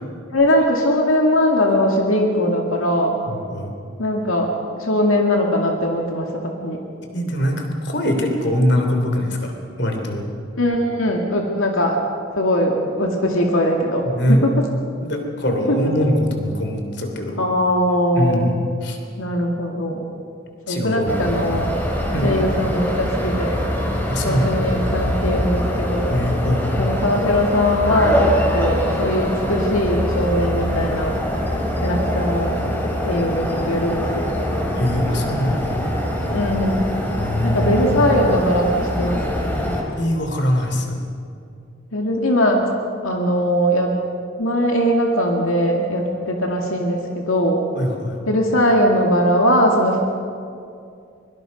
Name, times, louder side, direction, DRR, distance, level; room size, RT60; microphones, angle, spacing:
voice 1, 0.3-3.2 4.0-4.5 4.8-6.8 10.6-12.0 12.4-14.5 15.7-15.8 17.4-18.5 19.2-20.1 20.7-21.7 22.2-23.6 24.2-26.2 26.8-31.2 31.8-32.6 33.1-34.4 36.3-36.9 37.4-39.2 41.9-42.7 43.0-44.0 44.4-47.6 48.3-50.0, equal, 85° left, 1 dB, 2.3 m, -20 dB
voice 2, 3.3-3.7 7.1-9.5 9.8-10.3 14.1-14.4 15.0-17.4 18.1-18.5 18.8-19.0 20.7-21.1 22.1-22.3 24.1-24.7 26.1-26.8 34.7-35.8 37.2-37.8 40.0-40.9 47.7-48.2, left 1 dB, 55° left, 3 dB, 3.1 m, -22 dB
sound 1, 21.1-39.8, equal, 10° left, 3.2 m, -23 dB
23.5 x 23.5 x 5.3 m, 2.4 s
head